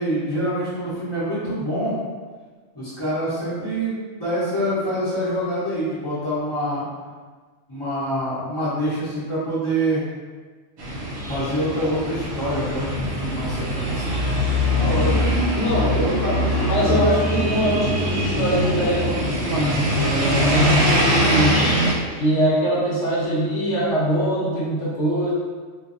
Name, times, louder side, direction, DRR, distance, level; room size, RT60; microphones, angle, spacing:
voice 1, 0.0-2.0 2.7-6.9 7.7-10.0 11.3-14.1 14.7-15.4 15.9-16.4 16.8-17.1, equal, 20° left, -13 dB, 0.8 m, -26 dB
sound 1, 10.8-21.9, equal, 60° right, 1.0 m, -22 dB
voice 2, 15.5-16.2 16.6-21.6 22.2-25.3, right 1 dB, 70° left, -7 dB, 1.1 m, -22 dB
3.8 x 2.6 x 2.5 m, 1.4 s
omnidirectional pair, 1.3 m